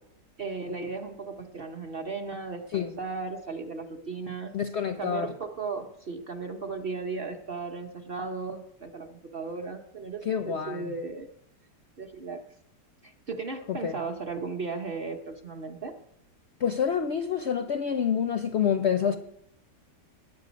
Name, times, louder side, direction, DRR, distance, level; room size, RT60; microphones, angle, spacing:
voice 1, 0.4-4.5 5.0-11.3 12.0-12.4 13.0-15.9, right 4 dB, 40° right, 4 dB, 0.9 m, -36 dB
voice 2, 4.5-5.3 10.3-10.9 13.7-13.9 16.6-19.2, left 7 dB, 60° left, 9 dB, 0.7 m, -27 dB
20.0 x 8.7 x 5.2 m, 0.82 s
omnidirectional pair, 1.9 m